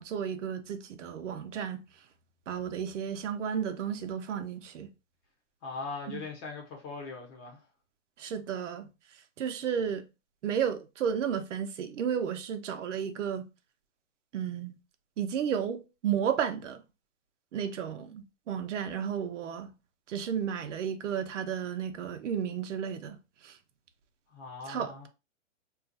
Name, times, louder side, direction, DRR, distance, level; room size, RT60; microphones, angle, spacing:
voice 1, 0.0-1.8 2.5-4.9 6.1-6.2 8.2-8.9 9.4-10.0 10.4-13.5 14.3-14.8 15.2-16.8 17.5-19.7 20.1-23.2 23.4-23.6 24.7-25.1, right 8 dB, 80° right, 0.7 m, -33 dB
voice 2, 5.6-7.6 24.3-25.1, left 4 dB, 25° left, 0.8 m, -40 dB
2.4 x 2.3 x 3.9 m
hypercardioid pair, 155°, 36 cm